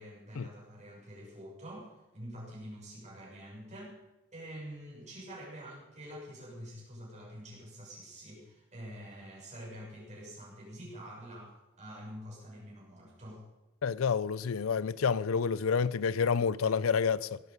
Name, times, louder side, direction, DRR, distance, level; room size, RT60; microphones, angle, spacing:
voice 1, 0.0-3.9 4.3-13.4, equal, 35° right, 6.6 m, -47 dB
voice 2, 13.8-17.4, left 6 dB, 80° left, 0.5 m, -29 dB
17.5 x 12.5 x 5.3 m
head